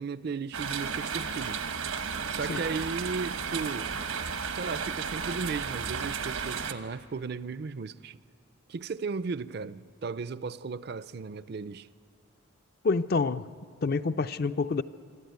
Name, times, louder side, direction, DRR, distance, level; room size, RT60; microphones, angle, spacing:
voice 1, 0.0-1.6 2.3-4.0 4.5-8.2 8.7-11.9, right 4 dB, 50° right, 0.4 m, -35 dB
sound 1, 0.5-6.7, right 6 dB, 85° right, 1.1 m, -33 dB
voice 2, 12.8-13.5 13.8-14.8, left 4 dB, 45° left, 0.4 m, -27 dB
25.0 x 13.0 x 9.4 m
head